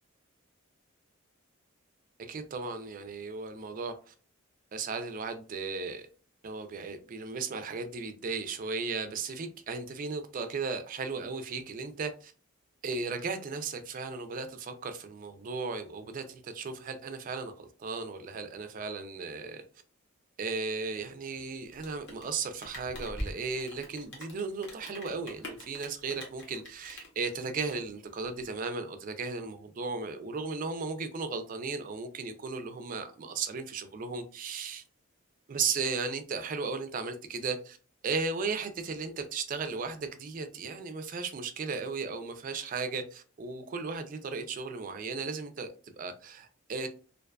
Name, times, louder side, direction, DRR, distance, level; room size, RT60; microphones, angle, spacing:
voice 1, 2.2-4.1 4.7-6.1 6.4-12.3 12.8-19.6 20.4-34.8 35.5-37.8 38.0-46.9, right 4 dB, 40° right, 8 dB, 0.3 m, -36 dB
Rain, 21.7-28.5, equal, 55° left, 0.9 m, -44 dB
2.5 x 2.3 x 2.2 m, 0.38 s
head